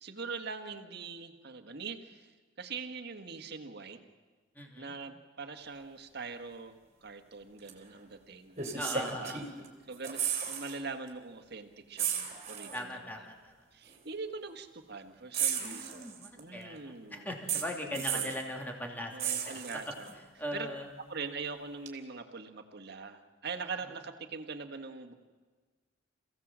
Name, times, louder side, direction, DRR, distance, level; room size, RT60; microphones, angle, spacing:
voice 1, 0.0-2.3 2.6-4.0 4.8-6.8 7.0-9.3 9.6-13.1 13.7-17.3 17.9-18.3 19.1-20.1 20.5-20.7 21.1-25.1, right 4 dB, 60° right, 6 dB, 1.7 m, -42 dB
voice 2, 4.5-4.9 8.8-9.4 12.7-13.5 15.6-19.6 20.4-20.9, equal, 10° left, 1 dB, 2.8 m, -40 dB
sound 1, 7.7-7.8 8.6-9.7 9.9-10.8 11.1-11.2 12.0-12.8 13.9-14.0 15.3-16.4 17.5-18.4 19.2-20.1 21.9-22.0, right 8 dB, 40° right, 3.1 m, -34 dB
28.0 x 16.5 x 7.5 m, 1.4 s
head